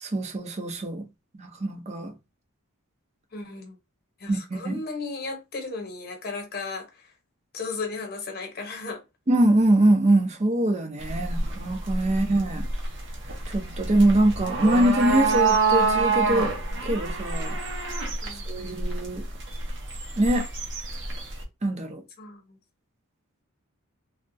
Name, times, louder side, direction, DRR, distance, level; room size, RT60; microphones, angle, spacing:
voice 1, 0.0-1.1 1.3-2.1 4.3-4.8 9.3-12.7 13.5-16.5 16.8-17.6 18.5-19.3 20.2-20.5 21.6-22.0, right 1 dB, 30° right, 0.5 m, -23 dB
voice 2, 3.3-3.8 4.2-7.1 7.5-9.0 12.1-12.3 18.2-18.9 22.2-22.6, left 3 dB, 45° left, 1.0 m, -35 dB
sound 1, 11.0-21.4, right 3 dB, 55° right, 0.9 m, -27 dB
3.3 x 2.3 x 2.6 m
head